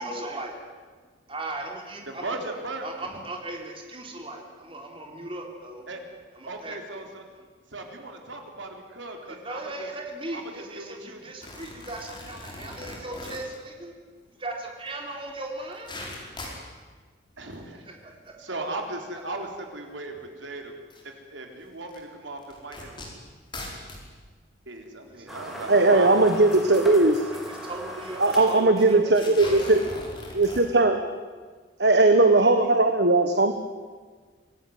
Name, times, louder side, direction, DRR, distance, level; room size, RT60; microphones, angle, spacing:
voice 1, 0.0-0.6 1.3-2.4 2.8-5.9 6.3-6.8 9.3-14.0 14.4-15.9 17.9-18.6 25.3-25.4 27.3-29.6, right 2 dB, 30° right, 1 dB, 3.7 m, -37 dB
voice 2, 2.1-3.1 5.9-6.0 6.5-7.2 7.7-9.9 10.3-11.2 17.4-22.9 24.7-26.4, right 2 dB, 80° right, 3 dB, 3.8 m, -37 dB
sound 1, 11.4-13.6 14.9-15.0 15.3-15.4 15.6-16.7 17.4-17.6 18.3-18.4 19.4-19.5 20.9-21.0 21.9-22.0 22.4-24.1 24.8-24.9 25.1-25.2 26.9-27.1 27.4-27.5 27.7-27.9 28.5-28.6 29.1-30.6, left 2 dB, 25° left, 5.0 m, -40 dB
sound 2, 25.3-29.3, equal, ahead, 3.7 m, -39 dB
voice 3, 25.7-27.2 28.2-29.8 30.3-31.0 31.8-33.5, right 2 dB, 60° right, 7 dB, 1.4 m, -19 dB
26.0 x 18.0 x 9.5 m, 1.5 s
head